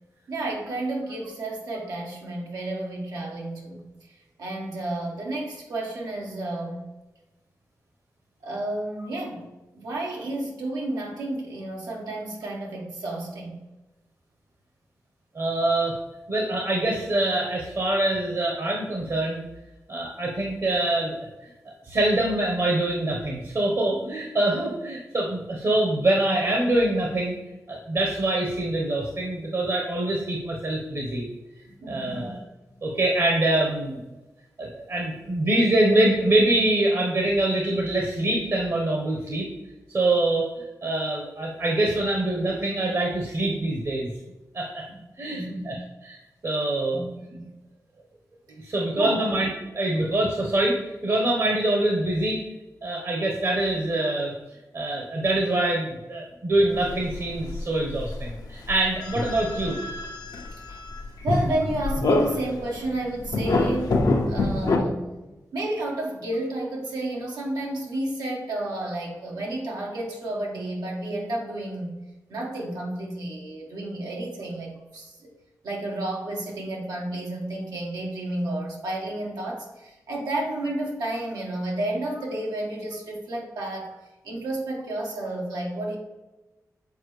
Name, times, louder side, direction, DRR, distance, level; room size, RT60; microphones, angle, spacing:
voice 1, 0.3-3.8 4.1-6.8 8.4-13.6 31.8-32.4 45.3-45.9 46.9-47.0 47.3-47.5 48.6-49.3 61.2-72.0 72.3-75.3 75.6-83.9 84.2-86.0, right 1 dB, 90° right, -2 dB, 1.4 m, -31 dB
voice 2, 15.3-16.0 16.3-19.4 19.9-21.3 21.8-27.4 27.7-31.2 31.9-32.4 32.8-34.0 34.6-39.5 39.9-44.1 44.5-44.9 45.2-45.8 46.0-46.2 46.4-47.0 48.5-52.4 52.8-54.3 54.7-59.8, right 1 dB, 50° right, -1 dB, 1.1 m, -24 dB
sound 1, 56.7-58.3 58.6-62.7 63.2-64.8, left 2 dB, 75° left, 0.8 m, -26 dB
7.1 x 4.3 x 3.2 m, 1.1 s
cardioid pair, 60°, 7 cm